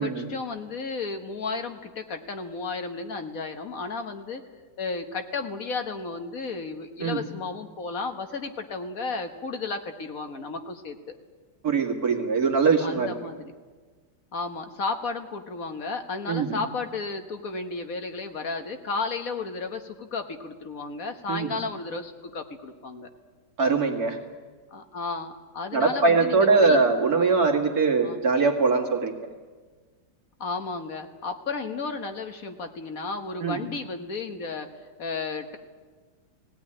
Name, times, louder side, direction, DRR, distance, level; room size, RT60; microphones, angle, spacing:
voice 1, 0.0-4.4 4.8-11.2 12.8-13.5 14.3-23.1 24.7-26.8 28.0-28.2 30.4-34.7 35.0-35.6, left 4 dB, 55° left, 6 dB, 1.6 m, -33 dB
voice 2, 11.6-13.1 16.3-16.6 21.3-21.6 23.6-24.2 25.7-29.3 33.4-33.6, right 4 dB, 60° right, 2 dB, 2.5 m, -22 dB
18.5 x 17.0 x 10.0 m, 1.4 s
omnidirectional pair, 1.8 m